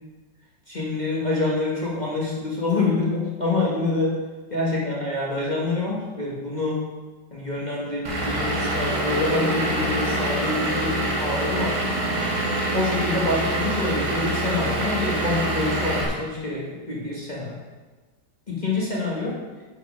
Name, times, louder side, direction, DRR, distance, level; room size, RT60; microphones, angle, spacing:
voice 1, 0.7-4.2 4.5-6.8 7.3-11.8 12.7-17.6 18.5-19.4, left 2 dB, 25° left, -5 dB, 1.4 m, -26 dB
Vehicle / Engine, 8.0-16.0, right 1 dB, 60° right, 2.5 m, -25 dB
10.5 x 5.2 x 5.0 m, 1.3 s
omnidirectional pair, 1.9 m